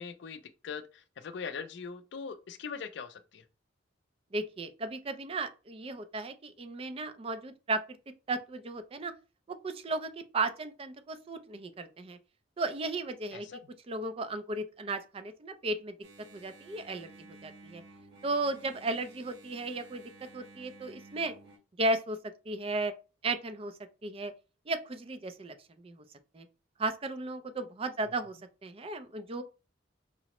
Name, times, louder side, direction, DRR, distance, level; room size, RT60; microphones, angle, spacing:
voice 1, 0.0-3.4 13.3-13.7, left 6 dB, 65° left, 0.4 m, -41 dB
voice 2, 4.3-7.8 8.3-9.1 9.5-12.2 12.6-13.5 13.9-15.9 16.3-17.1 17.4-17.8 18.2-20.0 20.3-21.3 21.8-22.2 22.5-22.9 23.2-23.7 24.0-24.3 24.7-25.5 25.8-26.0 26.3-26.4 26.8-29.4, right 2 dB, 30° right, 0.4 m, -35 dB
Engine, 16.0-21.6, right 3 dB, 60° right, 1.1 m, -54 dB
4.8 x 2.0 x 2.9 m
head